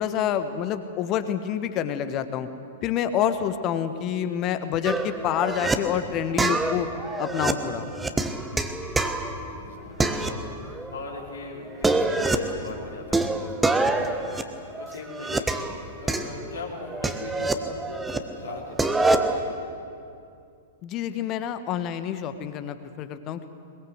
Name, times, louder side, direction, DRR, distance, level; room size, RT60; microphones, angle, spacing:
voice 1, 0.0-2.5 2.8-6.9 7.2-7.9 20.8-23.5, left 9 dB, 35° left, 11 dB, 1.5 m, -27 dB
sound 1, 4.8-5.7 6.4-9.6 10.0-10.9 11.1-11.2 11.7-12.6 13.1-15.7 16.1-18.2 18.5-19.4, right 2 dB, 10° right, 1.4 m, -26 dB
voice 2, 7.6-8.4 9.4-19.8, left 3 dB, 70° left, -1 dB, 4.2 m, -40 dB
22.0 x 21.5 x 8.0 m, 2.5 s
figure-of-eight pair, 100°, 0 cm